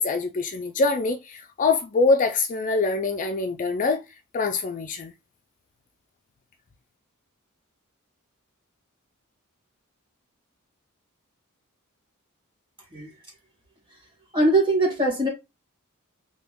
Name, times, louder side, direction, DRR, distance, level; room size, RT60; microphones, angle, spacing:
voice 1, 0.0-4.0 4.3-5.1, left 3 dB, 35° left, 0.4 m, -24 dB
voice 2, 14.3-15.3, right 2 dB, 20° right, 1.8 m, -21 dB
3.4 x 2.3 x 3.6 m
head